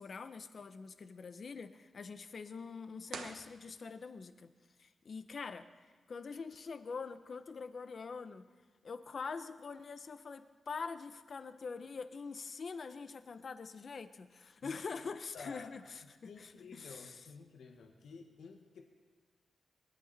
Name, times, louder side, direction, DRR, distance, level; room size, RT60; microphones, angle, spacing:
voice 1, 0.0-4.5 4.8-8.5 8.8-17.3, left 5 dB, 45° left, 11 dB, 0.7 m, -45 dB
sound 1, 3.1-4.3, right 5 dB, 85° right, 1.1 m, -48 dB
voice 2, 15.3-15.7 16.2-18.8, left 5 dB, 85° left, 3 dB, 1.4 m, -51 dB
23.0 x 11.5 x 4.1 m, 1.4 s
wide cardioid pair, 170°, 0 cm